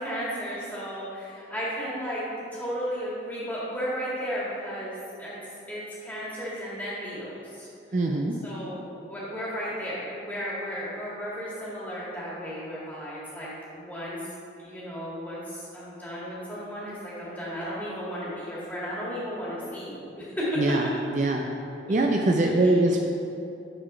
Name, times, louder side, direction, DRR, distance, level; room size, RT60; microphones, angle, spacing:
voice 1, 0.0-2.2 2.5-5.4 5.7-8.1 8.4-14.2 14.6-20.6 22.6-22.8, equal, 10° left, -8 dB, 1.8 m, -34 dB
voice 2, 7.9-8.3 20.6-20.9 21.1-21.4 21.9-23.0, right 2 dB, 40° right, 1 dB, 0.4 m, -22 dB
7.8 x 4.1 x 5.5 m, 2.6 s
head